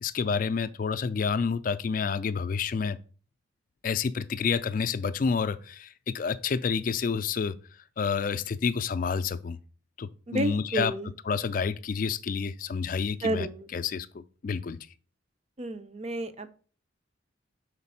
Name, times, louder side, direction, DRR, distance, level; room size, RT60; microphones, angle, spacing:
voice 1, 0.0-3.0 3.8-7.6 8.0-9.6 10.0-10.9 11.3-14.8, left 5 dB, 45° left, 0.3 m, -29 dB
voice 2, 10.3-11.1 13.2-13.7 15.6-16.5, right 1 dB, 35° right, 0.5 m, -31 dB
5.1 x 4.0 x 5.5 m
head